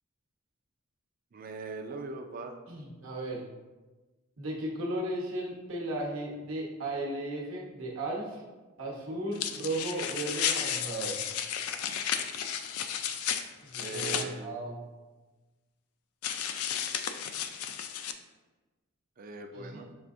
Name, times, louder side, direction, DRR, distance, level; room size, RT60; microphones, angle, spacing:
voice 1, 1.3-2.6 13.8-14.5 19.2-19.9, right 4 dB, 40° right, 6 dB, 0.3 m, -40 dB
voice 2, 2.7-3.4 4.4-8.4 8.8-11.2 13.6-14.8 19.5-19.8, right 1 dB, 70° right, -2 dB, 1.0 m, -35 dB
Gloves Rubber Movement, 9.3-14.3 16.2-18.1, left 8 dB, 85° left, 0.3 m, -33 dB
5.9 x 3.4 x 2.5 m, 1.2 s
head